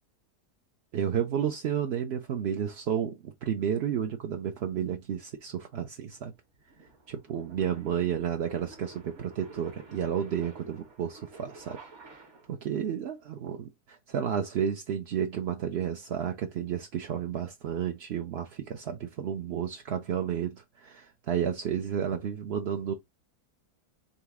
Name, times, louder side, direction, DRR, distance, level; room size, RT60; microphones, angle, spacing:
voice 1, 0.9-6.3 7.1-11.8 12.5-22.9, right 8 dB, 65° right, 0.6 m, -31 dB
sound 1, 5.1-12.7, right 3 dB, 50° right, 1.2 m, -51 dB
4.1 x 2.9 x 3.5 m
omnidirectional pair, 1.7 m